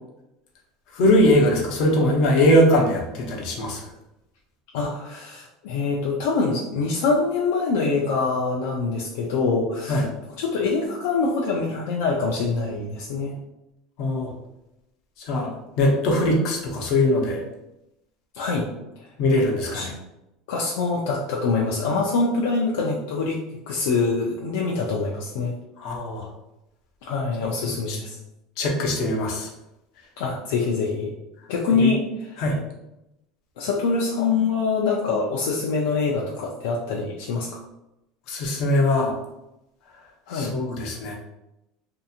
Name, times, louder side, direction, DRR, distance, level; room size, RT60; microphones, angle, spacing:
voice 1, 0.9-3.8 9.9-10.0 14.0-14.3 15.3-15.5 15.8-17.4 19.2-19.9 25.8-26.2 27.9-28.0 28.6-29.5 31.8-31.9 32.4-32.6 38.3-39.2 40.3-41.1, left 1 dB, 60° left, 0 dB, 0.8 m, -21 dB
voice 2, 4.7-10.1 10.4-13.3 18.3-18.7 19.6-19.9 20.5-23.4 23.7-25.5 27.0-28.2 30.2-31.1 31.5-32.4 33.6-37.6 40.3-40.5, left 4 dB, 80° left, -2 dB, 0.4 m, -24 dB
2.8 x 2.6 x 2.4 m, 0.89 s
supercardioid pair, 130°, 0 cm